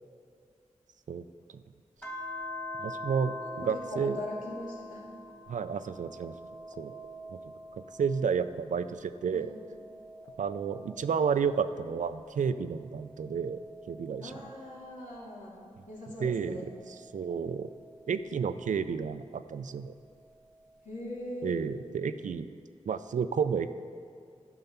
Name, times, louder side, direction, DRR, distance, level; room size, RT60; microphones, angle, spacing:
sound 1, 2.0-8.7 9.2-12.1 12.7-15.5 16.2-18.7 20.0-21.1, left 1 dB, 15° left, 2.0 m, -45 dB
voice 1, 2.8-4.2 5.5-6.3 6.8-6.9 7.3-7.4 8.0-9.5 10.4-13.6 13.9-14.4 16.2-16.6 16.9-17.7 18.1-19.9 21.4-22.5 22.9-23.7, right 6 dB, 70° right, 12 dB, 0.4 m, -31 dB
voice 2, 3.4-5.0 9.3-9.5 14.2-15.5 15.9-16.6 20.8-21.6, left 1 dB, 75° left, -5 dB, 2.5 m, -41 dB
11.0 x 5.7 x 5.6 m, 2.4 s
cardioid pair, 50°, 13 cm